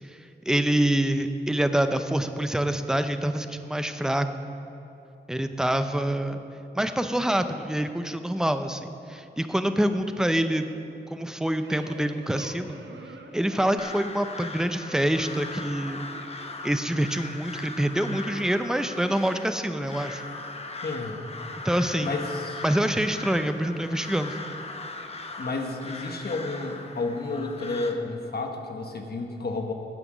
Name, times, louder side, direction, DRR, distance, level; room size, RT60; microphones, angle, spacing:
voice 1, 0.1-4.3 5.3-6.4 6.7-10.7 11.1-12.8 13.3-16.1 16.6-20.2 21.6-22.1 22.6-24.4, right 1 dB, 5° right, 8 dB, 0.5 m, -26 dB
sound 1, 11.6-16.5, right 3 dB, 80° right, 0.9 m, -47 dB
Crow, 13.8-27.9, left 3 dB, 35° left, 0.8 m, -39 dB
voice 2, 20.8-21.2 22.0-22.6 25.4-29.7, left 3 dB, 60° left, 3 dB, 1.2 m, -31 dB
15.0 x 5.8 x 6.1 m, 2.9 s
wide cardioid pair, 125°, 19 cm